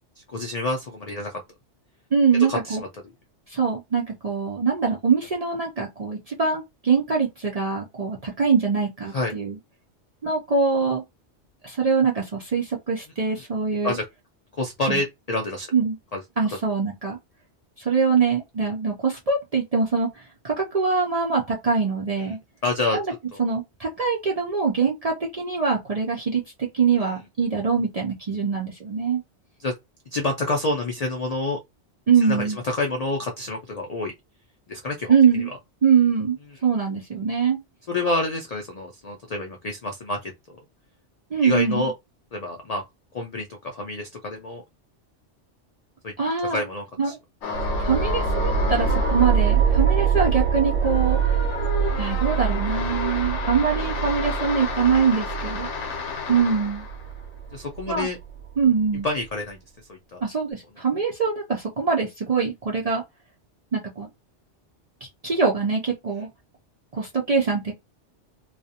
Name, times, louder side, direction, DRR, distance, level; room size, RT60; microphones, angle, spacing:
voice 1, 0.2-1.4 2.5-2.8 9.1-9.3 13.8-14.0 14.6-15.7 16.1-16.2 22.6-23.0 23.3-23.5 27.0-27.1 29.6-29.7 30.1-31.6 32.2-34.1 34.7-35.1 37.9-40.3 41.4-41.9 42.3-42.8 43.1-44.6 46.0-46.1 46.4-47.1 55.7-56.0 57.5-58.2 59.0-59.6 59.9-60.2, left 2 dB, 65° left, 0.4 m, -28 dB
voice 2, 2.1-2.8 3.5-9.6 10.2-11.0 11.6-14.0 14.9-15.0 15.7-16.0 16.4-17.2 17.8-22.4 22.9-23.1 23.4-29.2 32.1-32.6 35.1-35.5 35.8-37.6 41.3-41.9 46.2-46.6 47.0-47.2 47.8-51.4 52.0-56.0 56.3-56.9 57.9-58.1 58.6-59.1 60.2-63.0 63.7-64.1 65.2-66.3 66.9-67.7, right 5 dB, 50° right, 0.4 m, -23 dB
sound 1, 47.4-57.1, left 6 dB, 80° left, 0.9 m, -33 dB
sound 2, 47.5-58.6, right 6 dB, 85° right, 0.9 m, -24 dB
2.4 x 2.1 x 2.7 m
omnidirectional pair, 1.2 m